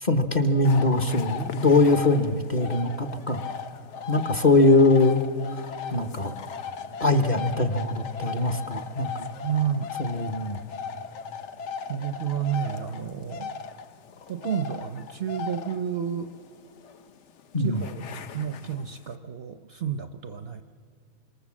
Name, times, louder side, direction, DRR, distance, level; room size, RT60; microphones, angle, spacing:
voice 1, 0.0-3.4 4.1-5.2 5.5-5.6 5.9-6.4 7.0-9.3 10.0-10.6 17.5-17.9, left 2 dB, 35° left, 5 dB, 1.0 m, -22 dB
sound 1, 0.6-19.1, left 6 dB, 60° left, 1.0 m, -38 dB
voice 2, 9.4-9.9 11.9-13.5 14.3-16.3 17.6-18.0 18.3-20.6, right 8 dB, 55° right, 8 dB, 0.8 m, -30 dB
26.0 x 25.5 x 7.4 m, 2.5 s
omnidirectional pair, 1.5 m